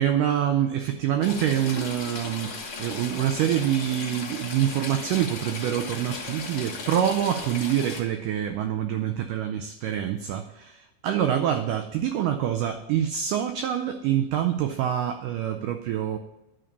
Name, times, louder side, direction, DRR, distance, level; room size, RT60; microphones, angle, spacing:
voice 1, 0.0-16.2, right 10 dB, 85° right, 6 dB, 1.8 m, -26 dB
Stream / Trickle dribble, 1.2-8.0, left 4 dB, 55° left, 1.4 m, -36 dB
11.0 x 3.8 x 6.8 m, 0.98 s
omnidirectional pair, 4.4 m